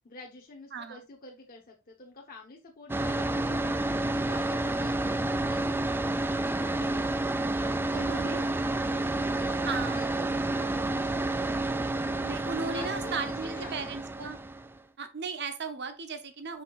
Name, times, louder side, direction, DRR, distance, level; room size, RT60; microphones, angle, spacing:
voice 1, 0.0-7.2 7.6-10.3 12.6-14.0, left 3 dB, 45° left, 1.1 m, -49 dB
voice 2, 0.7-1.0 7.9-8.4 9.6-10.1 12.2-14.4 15.0-16.6, right 5 dB, 55° right, 0.9 m, -36 dB
sound 1, 2.9-14.8, right 2 dB, 10° right, 0.4 m, -30 dB
5.9 x 5.5 x 3.1 m
head